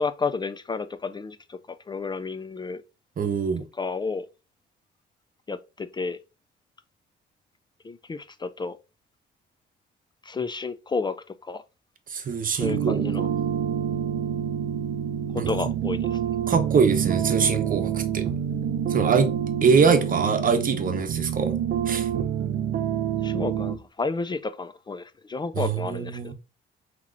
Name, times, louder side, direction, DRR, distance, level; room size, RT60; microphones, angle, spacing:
voice 1, 0.0-1.6 1.9-2.8 3.7-4.3 5.5-6.2 7.8-8.8 10.2-11.2 11.4-11.6 12.6-13.3 15.3-16.2 23.2-26.3, left 4 dB, 20° left, 0.4 m, -31 dB
voice 2, 3.2-3.6 12.1-13.0 15.4-15.5 16.5-18.2 18.9-19.3 19.6-21.6 21.9-22.1 25.5-26.3, right 5 dB, 45° right, 0.9 m, -23 dB
sound 1, 12.6-23.8, right 9 dB, 70° right, 0.6 m, -27 dB
5.7 x 3.0 x 2.5 m
cardioid pair, 90°, 20 cm